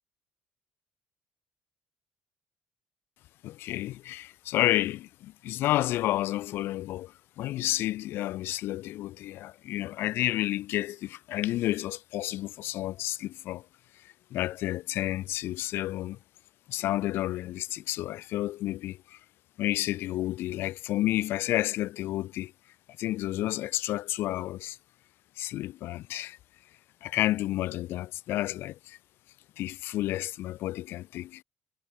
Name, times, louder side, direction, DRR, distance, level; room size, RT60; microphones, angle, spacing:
voice 1, 3.4-13.7 13.9-16.2 16.7-19.2 19.6-22.5 23.0-24.8 25.4-26.4 27.0-29.0 29.6-31.4, left 15 dB, 75° left, 2.7 m, -31 dB
cardioid pair, 95°, 4 cm